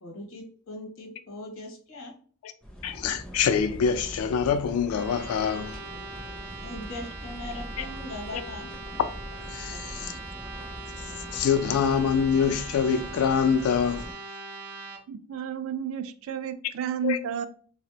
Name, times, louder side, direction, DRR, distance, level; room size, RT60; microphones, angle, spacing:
voice 1, 0.0-2.2 6.5-8.7 9.7-10.2, left 1 dB, 65° left, 0.8 m, -40 dB
sound 1, 2.6-14.1, equal, 5° left, 0.4 m, -42 dB
voice 2, 2.8-5.8 7.8-7.9 8.3-8.4 9.5-10.2 11.3-14.2 17.0-17.2, left 7 dB, 80° left, 0.3 m, -25 dB
sound 2, 4.8-15.0, right 3 dB, 45° right, 0.7 m, -42 dB
voice 3, 15.1-17.5, right 7 dB, 70° right, 0.3 m, -32 dB
3.2 x 2.1 x 2.8 m
head